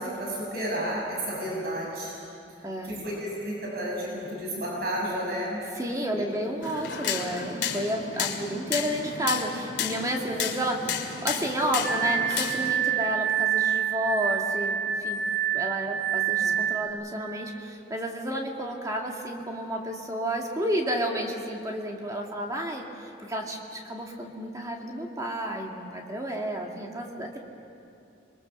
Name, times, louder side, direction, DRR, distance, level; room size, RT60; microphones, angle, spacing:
voice 1, 0.0-2.1 2.8-5.6 6.1-6.3 16.4-16.6, equal, 55° right, -3 dB, 6.3 m, -32 dB
voice 2, 2.6-3.0 5.8-15.2 15.5-27.4, equal, 20° right, 0 dB, 2.2 m, -31 dB
sound 1, 6.6-12.7, left 7 dB, 75° left, 2.5 m, -32 dB
Glass, 11.8-16.9, right 9 dB, 80° right, 4.0 m, -27 dB
29.5 x 22.5 x 6.8 m, 2.6 s
head